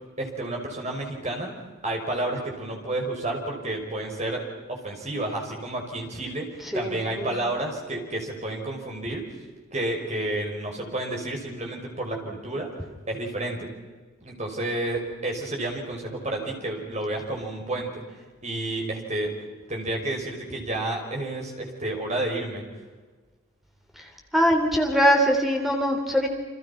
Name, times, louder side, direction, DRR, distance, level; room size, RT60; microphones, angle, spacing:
voice 1, 0.2-1.5 1.8-4.4 4.7-6.5 6.7-9.2 9.7-12.7 13.1-13.7 14.2-18.0 18.4-19.3 19.7-22.6, right 1 dB, 35° right, 1 dB, 5.8 m, -30 dB
voice 2, 6.7-7.3 24.0-24.1 24.3-26.3, equal, ahead, 1 dB, 3.5 m, -22 dB
30.0 x 26.0 x 5.9 m, 1.3 s
head